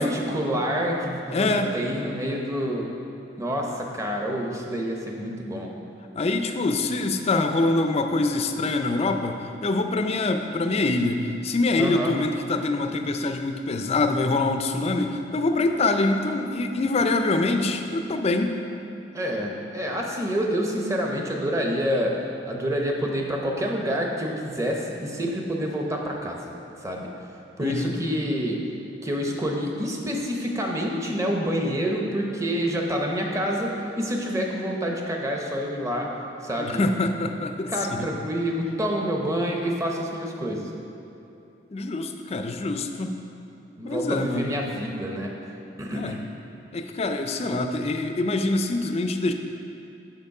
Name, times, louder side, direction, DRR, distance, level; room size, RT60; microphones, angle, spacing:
voice 1, 0.0-2.9 3.4-5.7 11.8-12.2 19.1-22.2 22.5-26.5 26.8-27.1 27.6-28.6 29.0-33.7 34.0-36.1 36.4-36.8 37.7-40.7 43.8-45.3 45.8-46.2, equal, 15° right, 0 dB, 0.8 m, -27 dB
voice 2, 1.3-1.7 6.2-18.5 27.6-27.9 36.6-38.1 41.7-43.1 43.8-44.5 45.9-46.2 46.7-49.3, left 2 dB, 35° left, 6 dB, 0.4 m, -25 dB
6.7 x 6.1 x 4.8 m, 2.9 s
head